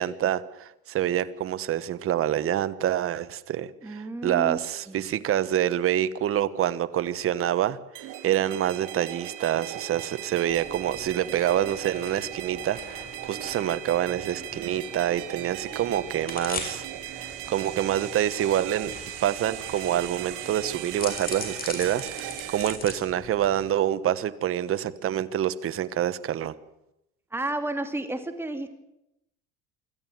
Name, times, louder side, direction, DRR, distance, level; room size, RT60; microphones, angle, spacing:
voice 1, 0.0-16.8 17.1-18.9 19.2-26.6, right 11 dB, 45° right, 14 dB, 1.3 m, -27 dB
voice 2, 3.8-4.6 4.9-5.0 27.3-28.7, right 2 dB, 5° right, 6 dB, 2.6 m, -31 dB
sound 1, 7.9-22.8, right 12 dB, 70° right, 2.5 m, -38 dB
sound 2, 10.5-23.7, left 4 dB, 30° left, 5.6 m, -42 dB
25.5 x 13.5 x 9.3 m, 0.86 s
cardioid pair, 120°, 32 cm